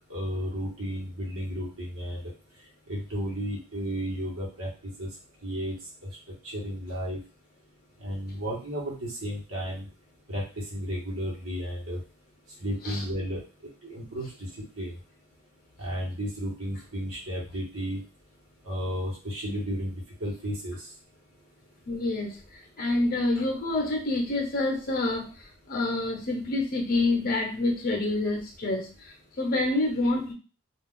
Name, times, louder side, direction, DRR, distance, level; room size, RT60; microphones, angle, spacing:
voice 1, 0.1-2.2 2.9-5.1 5.4-5.7 6.0-7.2 8.0-9.8 10.3-12.0 12.6-13.4 13.8-14.5 14.8-14.9 15.8-18.0 18.6-20.9, equal, 65° right, -4 dB, 1.1 m, -33 dB
voice 2, 21.9-22.4 22.8-25.3 25.7-30.3, left 2 dB, 40° left, 2 dB, 0.7 m, -27 dB
2.4 x 2.3 x 3.7 m, 0.34 s
head